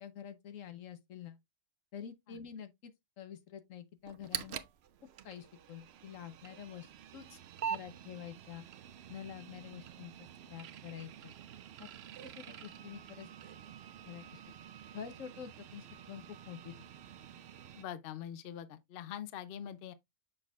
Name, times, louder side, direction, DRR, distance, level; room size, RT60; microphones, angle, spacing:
voice 1, 0.0-1.4 1.9-4.6 5.2-7.4 7.7-8.7 9.1-10.1 10.5-11.3 11.8-11.9 12.2-13.3 14.0-14.4 14.9-16.9, left 9 dB, 80° left, 1.3 m, -47 dB
sound 1, 4.0-17.8, right 8 dB, 65° right, 0.8 m, -47 dB
Wind instrument woodwind instrument, 12.4-17.8, right 6 dB, 30° right, 1.7 m, -62 dB
voice 2, 17.7-19.9, left 10 dB, 55° left, 0.7 m, -44 dB
6.7 x 6.1 x 2.4 m
omnidirectional pair, 1.3 m